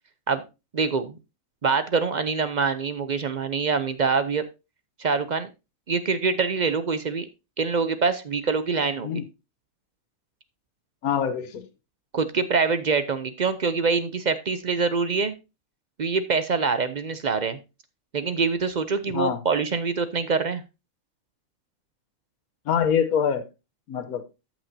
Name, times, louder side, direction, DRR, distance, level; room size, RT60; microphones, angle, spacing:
voice 1, 0.7-1.2 1.6-4.5 5.0-5.5 5.9-7.3 7.6-9.2 12.1-15.3 16.0-17.6 18.1-20.6, right 5 dB, 50° right, 12 dB, 0.5 m, -25 dB
voice 2, 11.0-11.7 19.1-19.4 22.7-23.4 23.9-24.2, left 7 dB, 85° left, 10 dB, 1.4 m, -24 dB
13.5 x 6.0 x 2.7 m, 0.26 s
omnidirectional pair, 1.5 m